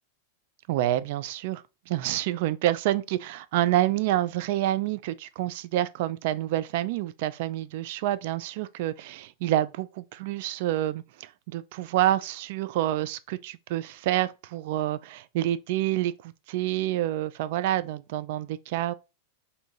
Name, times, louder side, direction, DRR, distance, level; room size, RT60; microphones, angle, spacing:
voice 1, 0.7-18.9, right 14 dB, 50° right, 0.3 m, -28 dB
3.4 x 2.7 x 4.1 m
figure-of-eight pair, 90°, 0 cm